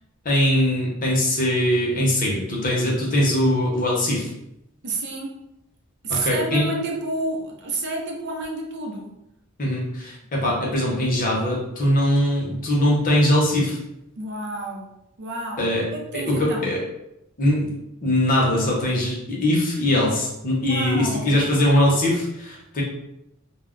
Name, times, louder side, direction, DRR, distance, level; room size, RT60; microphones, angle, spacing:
voice 1, 0.2-4.3 6.2-6.7 9.6-13.8 15.6-15.8 16.1-16.8 17.4-17.7 18.0-22.8, left 1 dB, 40° left, -3 dB, 0.7 m, -21 dB
voice 2, 4.8-5.4 6.0-9.2 14.2-16.7 20.6-21.4, right 2 dB, 55° right, 1 dB, 0.5 m, -30 dB
2.1 x 2.1 x 3.6 m, 0.84 s
head